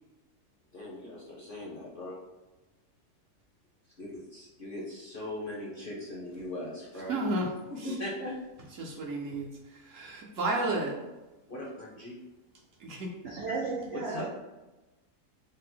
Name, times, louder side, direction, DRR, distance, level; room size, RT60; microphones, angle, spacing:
voice 1, 0.7-2.1 4.0-7.2 7.7-8.3 11.5-12.2 13.9-14.3, left 1 dB, 50° left, -6 dB, 0.7 m, -39 dB
voice 2, 7.1-8.0 8.8-11.0 12.8-13.1, right 2 dB, 65° right, -1 dB, 0.9 m, -32 dB
voice 3, 13.2-14.3, right 3 dB, 85° right, -3 dB, 0.5 m, -34 dB
3.4 x 2.0 x 4.3 m, 1.1 s
omnidirectional pair, 1.7 m